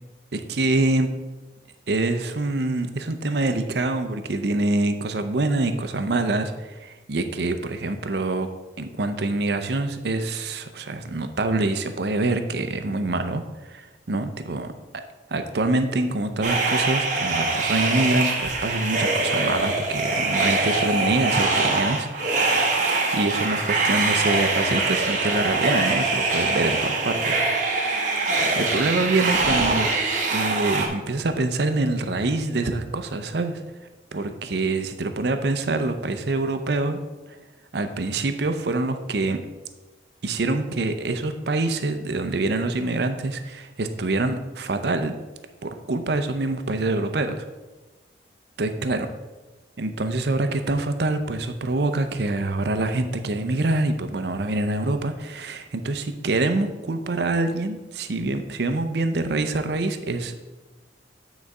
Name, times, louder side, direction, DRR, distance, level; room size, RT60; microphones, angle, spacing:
voice 1, 0.3-1.1 1.9-8.5 8.8-13.4 13.7-14.7 15.3-22.5 23.1-27.4 28.6-29.9 30.3-33.6 34.1-37.0 37.7-39.4 40.2-45.1 45.6-47.5 48.6-49.1 49.8-60.4, right 2 dB, 60° right, 8 dB, 0.6 m, -25 dB
sound 1, 16.4-30.9, right 3 dB, 40° right, 1.0 m, -23 dB
8.7 x 4.0 x 4.8 m, 1.2 s
head